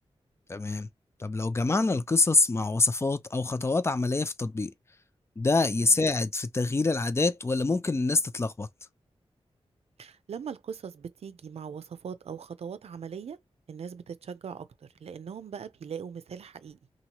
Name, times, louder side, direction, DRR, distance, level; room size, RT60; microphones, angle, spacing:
voice 1, 0.5-0.9 1.2-4.7 5.4-8.7, left 3 dB, 25° left, 0.4 m, -26 dB
voice 2, 10.0-13.4 13.7-16.8, right 7 dB, 75° right, 0.5 m, -40 dB
2.9 x 2.4 x 2.8 m
wide cardioid pair, 110°, 11 cm